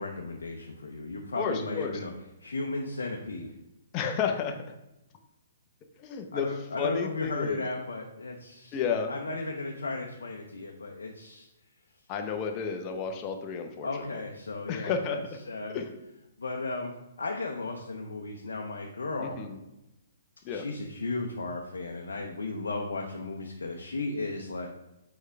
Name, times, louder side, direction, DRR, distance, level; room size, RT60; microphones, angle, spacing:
voice 1, 0.0-2.1 2.4-3.5 6.3-8.8 9.1-11.5 13.8-15.7 16.4-16.9 17.2-19.4 20.5-24.7, left 3 dB, 80° left, 1 dB, 0.7 m, -35 dB
voice 2, 1.3-2.0 3.9-4.6 6.0-6.5 6.8-7.6 8.7-9.1 12.1-14.2 14.7-15.2 15.7-15.9 19.2-19.6 20.4-20.6, left 6 dB, 35° left, 5 dB, 0.9 m, -31 dB
6.4 x 4.8 x 3.4 m, 0.93 s
hypercardioid pair, 130°, 0 cm